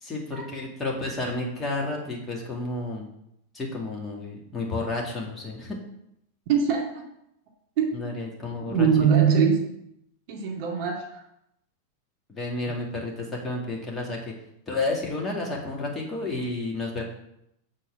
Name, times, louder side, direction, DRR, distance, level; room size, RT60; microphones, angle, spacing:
voice 1, 0.0-3.1 3.5-5.8 7.9-8.9 9.2-9.3 12.3-14.3 14.7-17.0, left 2 dB, 15° left, -2 dB, 2.2 m, -31 dB
voice 2, 6.5-6.9 7.8-8.1 8.7-9.7 10.3-11.2, right 7 dB, 45° right, 0 dB, 2.3 m, -22 dB
8.3 x 4.2 x 7.1 m, 0.78 s
figure-of-eight pair, 90°, 0 cm